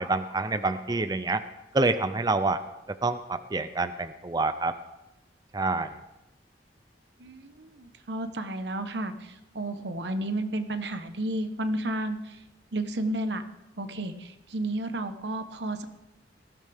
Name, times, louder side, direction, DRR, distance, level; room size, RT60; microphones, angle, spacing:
voice 1, 0.0-1.4 1.7-2.6 3.0-4.8 5.5-5.9, right 3 dB, 25° right, 11 dB, 0.5 m, -27 dB
voice 2, 7.2-12.4 12.7-13.4 13.8-15.9, right 1 dB, 80° right, 8 dB, 1.2 m, -32 dB
19.0 x 15.0 x 3.6 m, 0.95 s
head